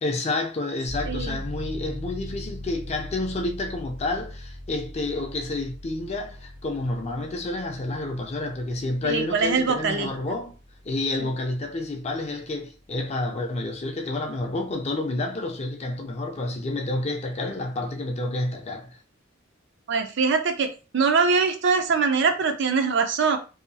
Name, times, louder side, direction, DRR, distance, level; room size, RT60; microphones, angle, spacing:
voice 1, 0.0-10.5 10.9-19.0, left 2 dB, 30° left, 0.4 m, -29 dB
sound 1, 0.9-13.4 13.7-13.8, left 1 dB, 90° right, 1.4 m, -40 dB
voice 2, 1.1-1.4 9.0-10.1 11.2-11.3 19.9-23.4, right 4 dB, 60° right, 0.5 m, -23 dB
2.7 x 2.2 x 2.6 m
head